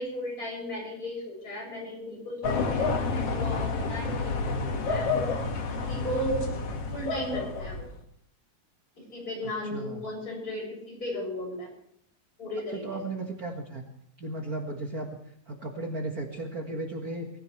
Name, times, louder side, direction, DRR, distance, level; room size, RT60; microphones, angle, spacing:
voice 1, 0.0-5.3 5.9-6.4 6.9-7.9 9.0-11.7 12.4-13.0, equal, 20° left, -2 dB, 7.7 m, -35 dB
sound 1, 2.4-8.0, left 4 dB, 45° left, 2.3 m, -29 dB
voice 2, 9.7-10.0 12.8-13.8 14.2-15.1 15.5-17.3, right 2 dB, 75° right, 2 dB, 0.8 m, -35 dB
23.5 x 15.0 x 3.3 m, 0.71 s
omnidirectional pair, 4.4 m